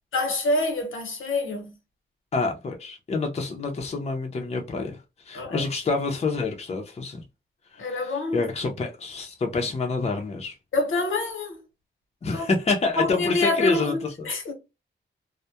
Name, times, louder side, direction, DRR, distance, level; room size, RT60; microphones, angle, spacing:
voice 1, 0.1-1.7 5.3-5.6 7.8-8.4 10.7-11.6 12.3-12.5 13.0-14.5, left 2 dB, 90° left, 0.9 m, -26 dB
voice 2, 2.3-5.0 5.3-7.2 7.7-10.6 12.2-14.3, left 3 dB, 30° left, 0.5 m, -27 dB
2.2 x 2.1 x 2.7 m
wide cardioid pair, 125°, 20 cm